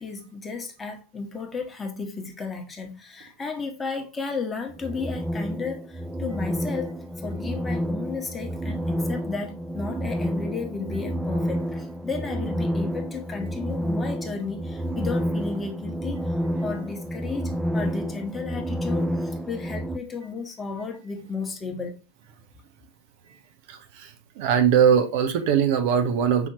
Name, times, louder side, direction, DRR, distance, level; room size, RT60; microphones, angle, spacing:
voice 1, 0.0-16.3 16.6-22.0, left 4 dB, 15° left, 1.1 m, -33 dB
sound 1, 4.7-20.0, equal, 10° right, 0.3 m, -29 dB
voice 2, 23.7-26.5, right 8 dB, 50° right, 0.6 m, -21 dB
5.7 x 2.8 x 2.8 m
figure-of-eight pair, 90°, 0 cm